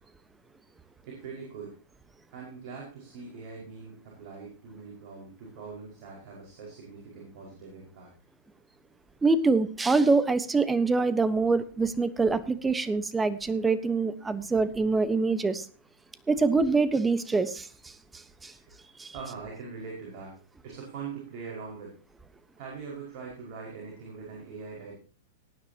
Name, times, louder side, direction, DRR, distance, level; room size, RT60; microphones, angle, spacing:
voice 1, 1.0-1.8 2.3-8.1 18.5-18.7 19.1-22.0 22.6-25.0, right 5 dB, 50° right, -2 dB, 5.3 m, -42 dB
voice 2, 9.2-15.6 16.3-17.9 18.4-18.5 19.0-19.1, right 3 dB, 15° right, 14 dB, 1.2 m, -25 dB
18.5 x 10.0 x 2.9 m, 0.39 s
hypercardioid pair, 110°, 0 cm